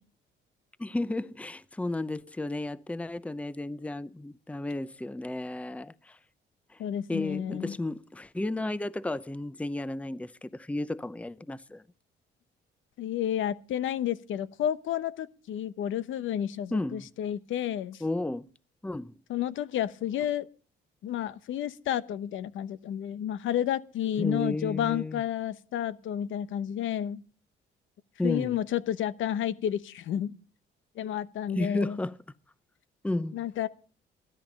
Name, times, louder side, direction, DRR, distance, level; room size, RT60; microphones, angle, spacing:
voice 1, 0.8-6.2 6.7-6.8 7.1-11.8 16.7-17.1 18.0-18.5 18.8-19.1 24.2-25.2 28.2-28.6 31.5-32.2 33.0-33.4, left 2 dB, 5° left, 0.7 m, -33 dB
voice 2, 6.8-7.8 13.0-18.0 19.3-20.5 21.0-27.2 28.2-30.3 31.0-32.0 33.3-33.7, left 10 dB, 80° left, 1.0 m, -31 dB
16.0 x 13.5 x 5.3 m
cardioid pair, 90°, 20 cm